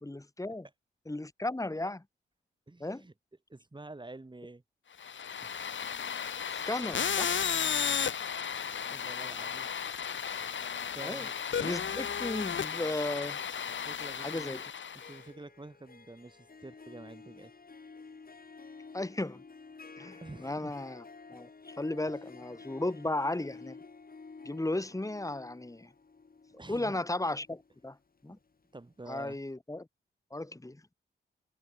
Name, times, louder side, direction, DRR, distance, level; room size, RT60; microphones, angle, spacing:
voice 1, 0.0-0.7 1.1-2.0 2.8-3.0 6.4-7.4 11.0-11.3 11.6-13.4 14.2-14.6 18.9-19.4 20.0-21.0 21.3-23.8 24.4-25.9 26.7-28.0 28.2-28.4 29.1-29.9 30.3-30.8, left 2 dB, 15° left, 2.9 m, -35 dB
voice 2, 2.7-3.1 3.5-4.6 5.4-5.6 8.9-9.7 10.9-11.3 13.8-14.6 14.9-17.5 20.2-20.7 26.5-27.0 28.3-28.4 28.7-29.4, right 2 dB, 20° right, 2.6 m, -48 dB
sound 1, 5.0-15.2, left 7 dB, 65° left, 1.9 m, -34 dB
Harp, 14.8-28.7, left 4 dB, 45° left, 6.2 m, -51 dB
cardioid pair, 55°, 21 cm